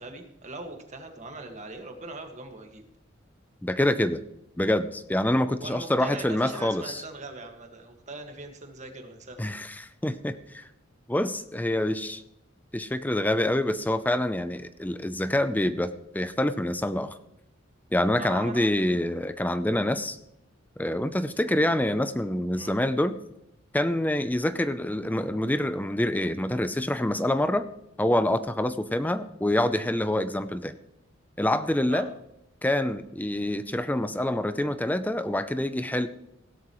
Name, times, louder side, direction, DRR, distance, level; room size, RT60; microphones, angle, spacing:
voice 1, 0.0-2.8 5.6-9.5 18.2-18.7 22.5-22.7 31.9-32.1, right 3 dB, 35° right, 4 dB, 1.7 m, -41 dB
voice 2, 3.6-4.2 4.6-7.0 9.4-10.6 11.1-12.2 12.7-17.2 17.9-20.2 20.8-23.2 23.7-27.7 28.0-30.8 31.4-32.1 32.6-36.1, left 1 dB, 10° left, 12 dB, 0.5 m, -26 dB
16.5 x 12.5 x 3.1 m, 0.81 s
head